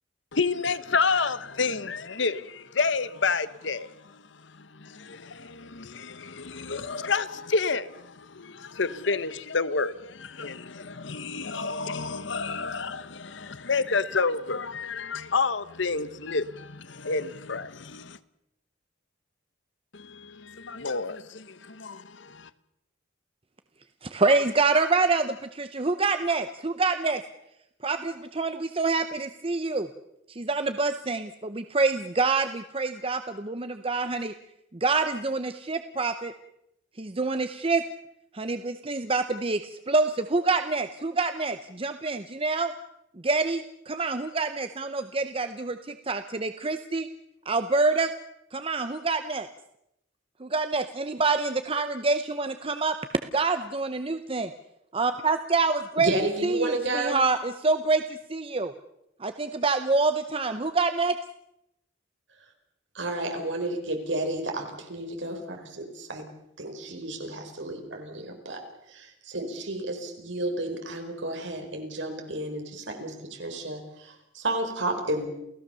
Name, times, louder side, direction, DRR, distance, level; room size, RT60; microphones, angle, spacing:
voice 1, 0.3-4.2 4.5-18.2 19.9-22.5, left 4 dB, 65° left, 1.0 m, -30 dB
voice 2, 24.0-27.2 27.8-29.9 30.3-34.3 34.7-36.3 37.0-37.8 38.3-42.7 43.2-47.1 47.5-48.1 48.5-49.5 50.4-53.0 53.3-54.5 54.9-56.1 56.4-58.7 59.2-61.2, right 3 dB, 30° right, 0.8 m, -26 dB
voice 3, 56.0-57.2 62.9-66.2 66.6-68.6 68.9-75.3, right 1 dB, 65° right, 4.7 m, -32 dB
28.5 x 17.0 x 6.9 m
head